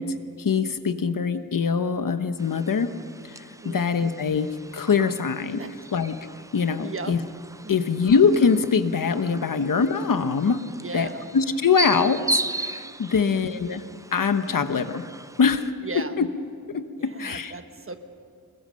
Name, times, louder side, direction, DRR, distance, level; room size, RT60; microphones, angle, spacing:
voice 1, 0.0-2.9 3.2-4.5 4.7-5.6 5.9-6.2 6.5-7.2 7.7-10.6 10.9-11.1 11.3-13.8 14.1-15.0 15.4-15.7 15.9-16.3 16.7-17.5, left 5 dB, 90° left, 10 dB, 1.1 m, -23 dB
sound 1, 2.4-15.7, right 2 dB, 10° right, 0.5 m, -36 dB
voice 2, 3.6-4.0 5.6-5.7 6.8-7.1 7.6-8.1 10.7-11.3 13.1-13.6 15.8-16.1 17.0-18.0, right 3 dB, 40° right, 8 dB, 1.3 m, -37 dB
26.0 x 21.5 x 6.4 m, 2.4 s
wide cardioid pair, 105°, 32 cm